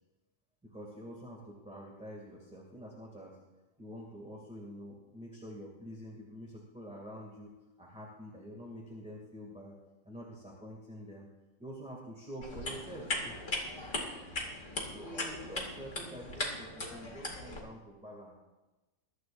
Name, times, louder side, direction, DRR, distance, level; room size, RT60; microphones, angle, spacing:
voice 1, 0.6-3.4 3.8-7.5 7.8-9.7 10.0-11.3 11.6-13.4 14.9-18.3, equal, 5° right, -3 dB, 2.3 m, -47 dB
sound 1, 12.4-17.6, left 2 dB, 60° left, 2.7 m, -38 dB
22.0 x 13.0 x 2.6 m, 1.1 s
omnidirectional pair, 1.4 m